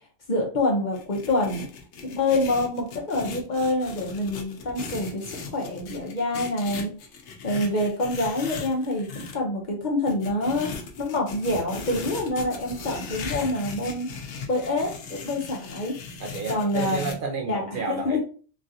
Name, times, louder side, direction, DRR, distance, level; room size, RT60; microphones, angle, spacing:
voice 1, 0.3-1.7 2.0-5.2 5.5-6.9 7.4-10.7 11.0-14.1 14.5-16.0 16.5-17.1 17.5-18.2, left 2 dB, 50° left, -1 dB, 0.8 m, -26 dB
sound 1, 0.9-9.4 10.1-17.1, left 4 dB, 85° left, 0.9 m, -38 dB
voice 2, 16.2-18.2, right 4 dB, 60° right, 1 dB, 0.7 m, -31 dB
3.1 x 2.4 x 2.7 m, 0.40 s
omnidirectional pair, 1.1 m